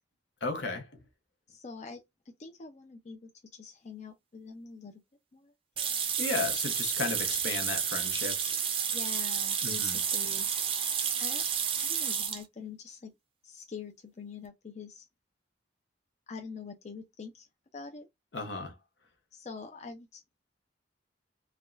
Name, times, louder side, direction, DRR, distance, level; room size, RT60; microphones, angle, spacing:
voice 1, 0.4-1.0 6.2-8.5 9.6-10.0 18.3-18.7, left 3 dB, 75° left, 0.9 m, -34 dB
voice 2, 1.5-5.0 5.3-5.5 6.3-6.4 8.9-10.5 11.2-11.4 11.8-13.1 13.4-15.1 16.3-17.5 17.7-18.1 19.3-20.2, left 5 dB, 40° left, 0.5 m, -45 dB
sound 1, 5.8-12.4, right 7 dB, 30° right, 0.5 m, -31 dB
3.5 x 2.2 x 2.4 m
head